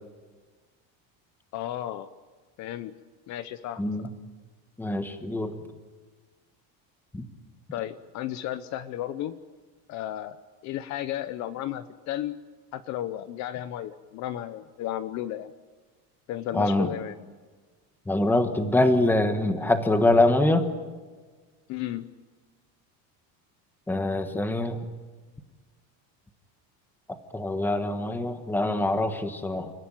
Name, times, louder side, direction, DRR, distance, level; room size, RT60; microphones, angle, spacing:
voice 1, 1.5-2.1 2.6-3.0 3.3-4.1 7.7-9.4 9.9-10.4 10.6-12.4 12.7-15.5 16.3-17.2 21.7-22.1, left 12 dB, 45° left, 13 dB, 0.8 m, -33 dB
voice 2, 3.8-4.1 4.8-5.5 7.1-7.3 16.5-16.9 18.1-20.7 23.9-24.8 27.3-29.7, left 2 dB, 5° left, 7 dB, 1.3 m, -24 dB
29.5 x 15.0 x 9.1 m, 1.4 s
cardioid pair, 180°, 40 cm